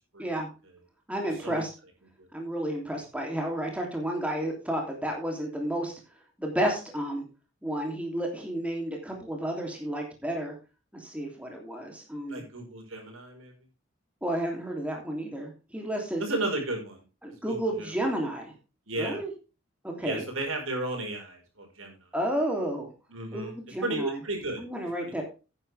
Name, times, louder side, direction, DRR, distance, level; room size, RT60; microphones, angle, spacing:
voice 1, 1.1-1.7 2.3-5.9 6.4-7.2 7.6-10.5 10.9-12.4 14.2-16.2 17.2-18.5 19.0-19.3 19.8-20.3 22.1-22.9 23.3-24.2 24.6-25.2, right 1 dB, 5° right, 1 dB, 2.9 m, -31 dB
voice 2, 12.3-13.5 16.2-17.0 17.5-17.9 18.9-19.2 20.0-22.0 23.1-23.5 23.8-24.6 25.0-25.1, right 2 dB, 90° right, 2 dB, 5.0 m, -33 dB
11.0 x 9.9 x 3.4 m, 0.31 s
head